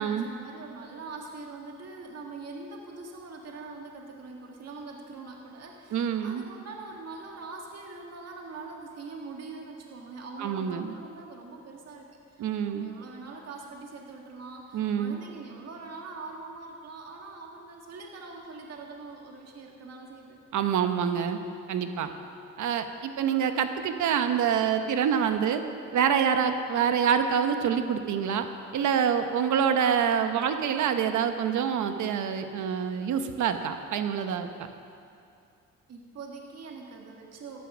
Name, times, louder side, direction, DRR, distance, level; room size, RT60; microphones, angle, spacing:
voice 1, 0.0-20.4 35.9-37.6, right 3 dB, 55° right, 0 dB, 1.8 m, -43 dB
voice 2, 5.9-6.4 10.4-10.9 12.4-12.9 14.7-15.2 20.5-21.4 21.7-22.1 22.6-25.6 25.9-28.5 28.7-34.5, right 8 dB, 75° right, 8 dB, 1.1 m, -26 dB
14.0 x 11.0 x 6.2 m, 2.5 s
cardioid pair, 90°, 30 cm